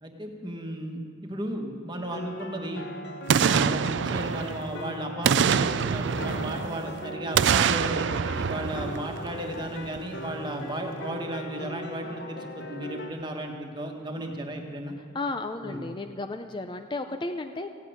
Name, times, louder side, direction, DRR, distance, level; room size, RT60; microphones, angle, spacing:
voice 1, 0.0-2.9 3.4-14.9 15.6-15.9, right 1 dB, 20° right, 3 dB, 1.4 m, -35 dB
sound 1, 2.0-13.1, left 1 dB, 55° left, 1.1 m, -39 dB
Boom, 3.3-4.8 5.2-6.9 7.3-9.6 10.0-10.1, right 7 dB, 60° right, 0.4 m, -25 dB
voice 2, 15.1-17.7, left 2 dB, 25° left, 7 dB, 0.4 m, -33 dB
15.5 x 8.4 x 9.3 m, 2.2 s
head